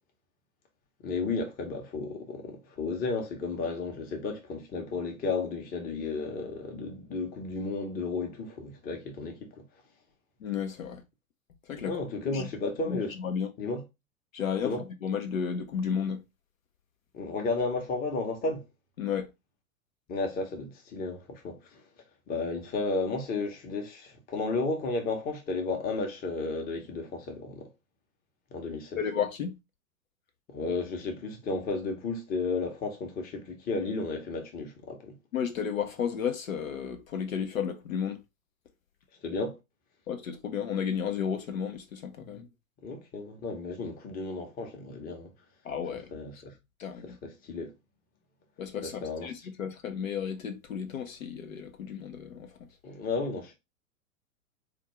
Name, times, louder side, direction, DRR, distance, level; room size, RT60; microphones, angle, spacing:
voice 1, 1.0-9.5 11.8-13.1 13.6-13.8 14.6-14.8 17.1-18.6 20.1-21.8 22.3-27.7 28.5-29.0 30.5-35.2 39.2-39.6 42.8-45.3 46.1-46.5 47.0-47.7 48.8-49.3 52.8-53.5, left 3 dB, 20° left, 0.9 m, -33 dB
voice 2, 10.4-11.0 11.7-12.0 12.3-12.5 12.9-13.5 14.3-14.7 15.0-16.2 19.0-19.3 29.0-29.6 35.3-38.2 40.1-42.5 45.6-46.1 46.8-47.2 48.6-52.5, left 7 dB, 70° left, 0.7 m, -33 dB
4.2 x 2.5 x 3.0 m
figure-of-eight pair, 100°, 43 cm